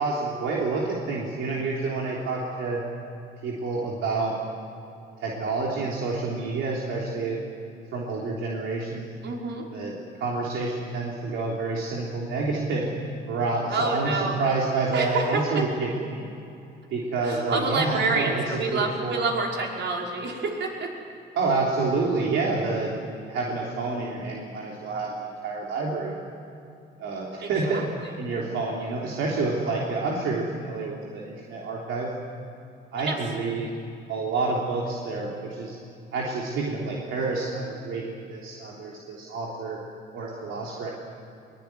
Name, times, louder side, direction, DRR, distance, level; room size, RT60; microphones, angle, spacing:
voice 1, 0.0-2.8 3.4-4.4 5.2-7.4 7.7-9.1 9.7-12.9 13.3-16.3 16.9-19.2 21.3-23.0 23.3-25.1 25.4-26.1 27.0-27.8 28.2-32.1 32.9-33.7 34.1-35.8 36.1-39.8 40.1-40.9, right 3 dB, 85° right, -3 dB, 3.5 m, -28 dB
voice 2, 9.2-9.7 13.7-14.3 14.9-15.6 17.2-20.9 27.4-28.1 33.1-33.2, right 3 dB, 65° right, -1 dB, 5.4 m, -28 dB
22.5 x 21.5 x 9.7 m, 2.7 s
cardioid pair, 90°, 20 cm